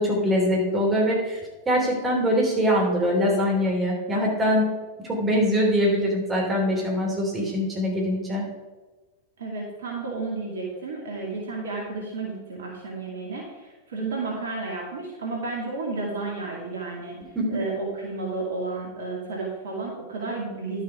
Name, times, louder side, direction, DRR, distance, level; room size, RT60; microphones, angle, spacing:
voice 1, 0.0-4.7 5.0-8.4 17.4-17.5, equal, 15° right, -2 dB, 3.6 m, -23 dB
voice 2, 9.4-20.8, right 3 dB, 65° right, -1 dB, 2.2 m, -32 dB
11.5 x 7.0 x 4.9 m, 1.2 s
figure-of-eight pair, 90°, 0 cm